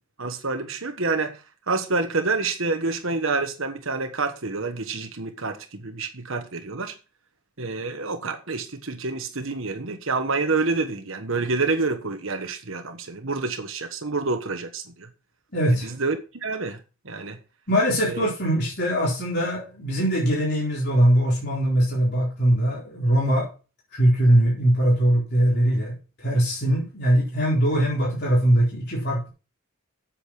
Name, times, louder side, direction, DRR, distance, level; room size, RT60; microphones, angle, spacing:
voice 1, 0.2-6.9 7.6-15.1 15.8-17.4 18.1-18.3, right 3 dB, 60° right, 1.3 m, -28 dB
voice 2, 15.5-15.9 17.7-23.5 23.9-29.3, right 1 dB, 45° left, 4.1 m, -21 dB
8.4 x 7.7 x 6.1 m
head